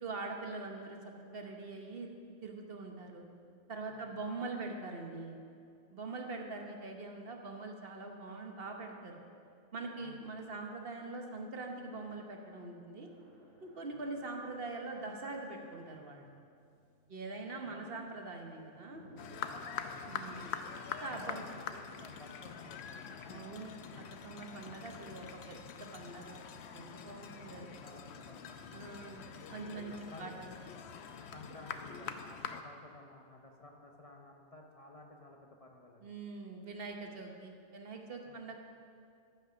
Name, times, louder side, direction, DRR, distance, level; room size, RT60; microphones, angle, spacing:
voice 1, 0.0-2.1 2.4-3.3 3.7-5.4 5.9-9.2 9.7-13.1 13.6-16.3 17.1-19.1 20.1-20.5 21.0-21.4 23.3-27.7 28.7-30.6 36.0-38.6, right 3 dB, 60° right, 2 dB, 1.2 m, -43 dB
voice 2, 10.0-10.3 13.9-14.1 17.6-17.8 19.6-20.1 21.1-23.5 27.3-29.1 29.9-30.3 31.3-36.1 38.3-38.4, left 2 dB, 35° left, 1 dB, 0.8 m, -55 dB
Keyboard (musical), 12.1-14.1, equal, 25° right, 0.9 m, -62 dB
sound 1, 13.1-21.8, right 1 dB, 80° right, 2.6 m, -61 dB
sound 2, 19.2-32.6, left 7 dB, 75° left, 0.9 m, -45 dB
14.0 x 5.8 x 6.2 m, 2.4 s
omnidirectional pair, 1.1 m